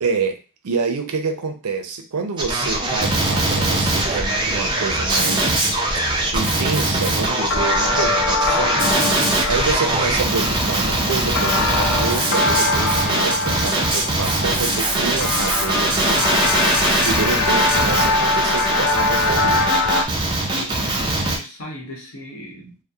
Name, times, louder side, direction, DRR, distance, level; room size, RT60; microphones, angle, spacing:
voice 1, 0.0-5.7 6.3-8.9 9.5-19.7, right 5 dB, 85° right, 6 dB, 0.5 m, -27 dB
Male speech man speaking, 2.4-21.4, right 2 dB, 20° right, 0.4 m, -21 dB
sound 1, 3.2-20.1, left 3 dB, 60° left, 0.4 m, -23 dB
voice 2, 20.5-22.8, equal, 80° left, -1 dB, 0.9 m, -37 dB
2.7 x 2.0 x 2.3 m, 0.33 s
head